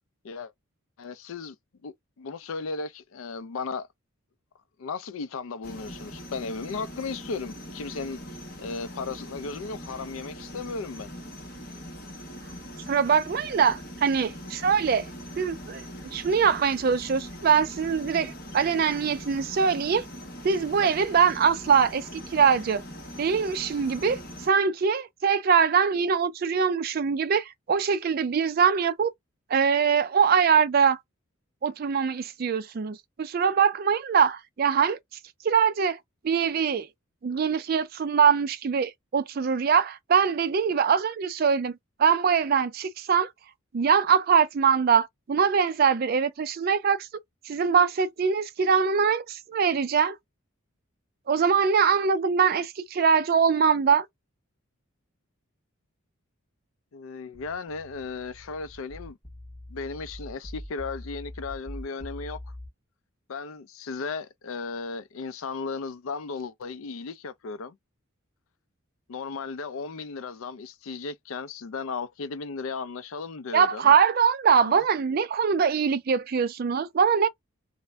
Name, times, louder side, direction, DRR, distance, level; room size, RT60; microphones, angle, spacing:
voice 1, 1.0-1.6 1.8-3.9 4.8-8.2 8.6-11.1 56.9-59.2 59.7-62.4 63.3-67.8 69.1-73.9 74.6-74.8, left 4 dB, 75° left, 0.4 m, -35 dB
sound 1, 5.6-24.5, equal, 45° left, 1.1 m, -41 dB
voice 2, 12.9-15.1 15.4-15.8 16.1-20.0 20.4-22.8 23.2-29.1 29.5-31.0 31.6-35.0 35.4-36.0 36.2-36.9 37.2-43.3 43.7-47.1 47.5-50.2 51.3-54.1 73.5-77.3, right 6 dB, 45° right, 0.3 m, -23 dB
sound 2, 57.3-62.7, left 1 dB, 5° left, 1.0 m, -42 dB
2.6 x 2.0 x 3.3 m
head